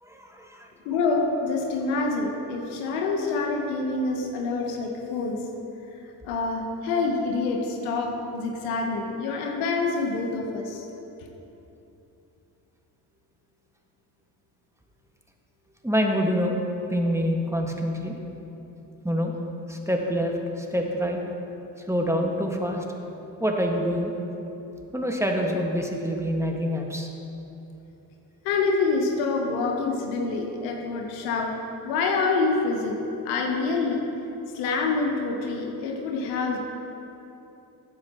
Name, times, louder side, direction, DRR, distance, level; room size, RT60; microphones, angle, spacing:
voice 1, 0.0-0.7 15.8-16.6 16.9-18.2 19.0-19.4 19.7-21.2 21.9-22.8 23.4-24.1 24.9-27.1, equal, 5° right, 1 dB, 1.6 m, -26 dB
voice 2, 0.8-5.4 6.2-10.9 28.4-31.6 31.8-34.1 34.5-36.6, left 3 dB, 85° left, 2 dB, 1.1 m, -26 dB
14.0 x 9.5 x 3.0 m, 2.9 s
hypercardioid pair, 45°, 50 cm